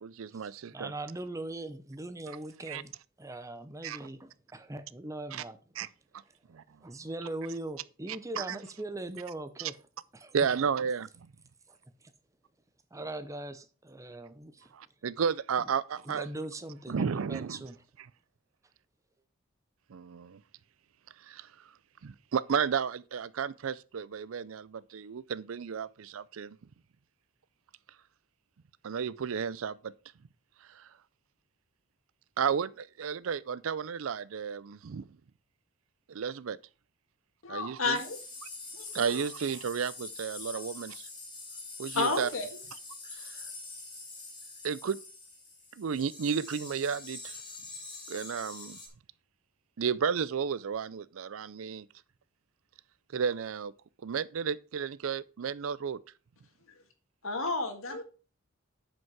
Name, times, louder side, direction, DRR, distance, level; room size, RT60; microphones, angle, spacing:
voice 1, 0.0-0.9 2.7-2.8 3.8-4.0 5.3-5.4 5.8-5.9 6.5-6.6 8.1-8.6 9.6-9.7 10.3-11.3 14.7-16.3 16.9-17.6 19.9-20.4 21.3-21.5 22.0-26.6 28.8-29.9 30.8-30.9 32.4-35.1 36.1-36.6 37.5-38.0 38.9-41.1 41.8-42.3 44.6-45.0 45.8-47.3 48.1-48.8 49.8-51.9 53.1-53.7 54.0-56.0, right 6 dB, 80° right, 0.5 m, -33 dB
voice 2, 0.7-2.9 3.2-5.6 6.8-9.8 10.1-10.3 11.7-11.8 12.9-14.7 15.6-15.7 16.1-17.8, right 2 dB, 15° right, 0.7 m, -40 dB
voice 3, 37.4-38.2 38.7-39.2 41.9-42.5 57.2-58.0, left 3 dB, 85° left, 1.9 m, -31 dB
sound 1, 37.9-48.9, left 3 dB, 25° left, 2.2 m, -45 dB
9.3 x 5.3 x 4.7 m
head